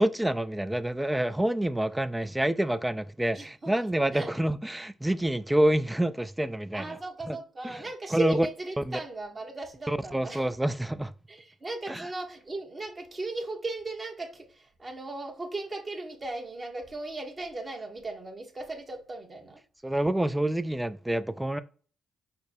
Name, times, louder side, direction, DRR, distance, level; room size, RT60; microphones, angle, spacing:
voice 1, 0.0-7.0 7.3-7.4 7.6-7.8 8.1-8.5 8.8-9.0 9.9-11.1 11.9-12.1 19.8-21.6, right 1 dB, 10° right, 0.4 m, -27 dB
voice 2, 3.3-4.3 6.7-10.4 11.3-19.6, right 2 dB, 35° right, 1.1 m, -37 dB
5.1 x 2.1 x 4.2 m
supercardioid pair, 60°, 0 cm